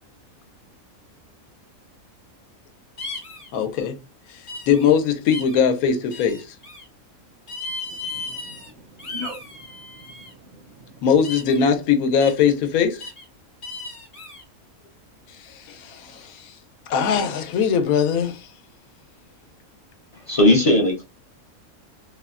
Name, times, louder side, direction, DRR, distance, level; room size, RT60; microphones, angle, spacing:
sound 1, 3.0-3.5 4.5-4.9 5.3-5.6 6.1-6.8 7.5-8.7 9.0-10.3 11.2-11.6 12.2-12.5 13.0-13.2 13.6-14.4, left 3 dB, 25° left, 0.8 m, -35 dB
voice 1, 3.5-4.0 4.3-6.5 11.0-13.1 15.4-16.5 16.9-18.5, left 7 dB, 85° left, 1.1 m, -21 dB
voice 2, 7.9-11.0, equal, 65° right, 0.7 m, -42 dB
voice 3, 20.1-21.0, left 1 dB, 45° left, 0.4 m, -17 dB
3.3 x 2.1 x 2.3 m
omnidirectional pair, 1.5 m